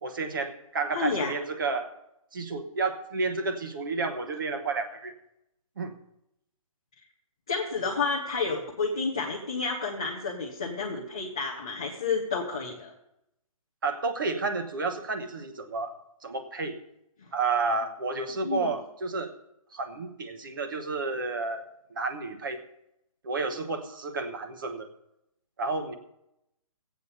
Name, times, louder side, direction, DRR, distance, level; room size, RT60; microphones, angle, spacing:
voice 1, 0.0-1.9 2.3-5.1 5.8-6.0 13.8-16.0 16.2-16.8 17.3-19.3 19.7-21.6 21.9-22.6 23.2-24.9 25.6-26.0, right 3 dB, 35° right, 7 dB, 1.1 m, -31 dB
voice 2, 0.9-1.3 7.5-12.9 18.4-18.8, left 4 dB, 10° left, -4 dB, 0.4 m, -30 dB
16.5 x 8.2 x 5.4 m, 0.84 s
hypercardioid pair, 180°, 18 cm